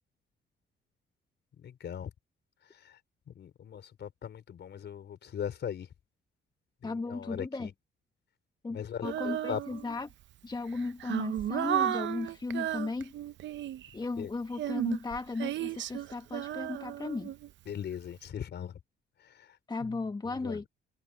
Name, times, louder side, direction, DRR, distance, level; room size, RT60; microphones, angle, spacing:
voice 1, 1.6-2.1 2.8-3.0 3.3-5.9 6.8-7.7 8.7-9.6 14.2-14.3 17.7-18.7 19.2-20.0 20.2-20.6, left 8 dB, 60° left, 4.6 m, -39 dB
voice 2, 6.8-7.7 8.6-10.1 10.4-13.1 13.9-17.3 19.7-20.7, left 3 dB, 20° left, 1.4 m, -36 dB
Female singing, 9.0-10.1 10.7-13.9 14.5-17.7, right 11 dB, 65° right, 0.7 m, -34 dB
cardioid pair, 90°, 20 cm